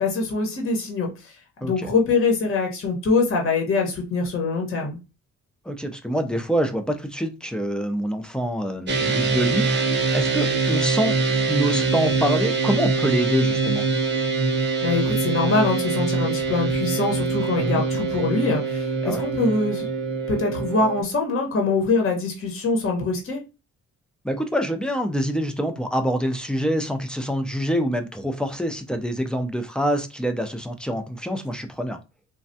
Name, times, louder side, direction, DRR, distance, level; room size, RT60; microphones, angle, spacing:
voice 1, 0.0-1.3 1.6-5.0 14.6-19.9 20.3-23.4, left 3 dB, 45° left, 2 dB, 1.0 m, -24 dB
voice 2, 5.7-9.9 10.1-11.1 11.4-13.9 17.6-17.8 19.0-19.3 24.2-32.0, equal, 5° left, 6 dB, 0.5 m, -26 dB
sound 1, 8.9-21.0, right 4 dB, 35° right, 0.8 m, -24 dB
3.2 x 2.3 x 2.6 m, 0.28 s
cardioid pair, 90°, 30 cm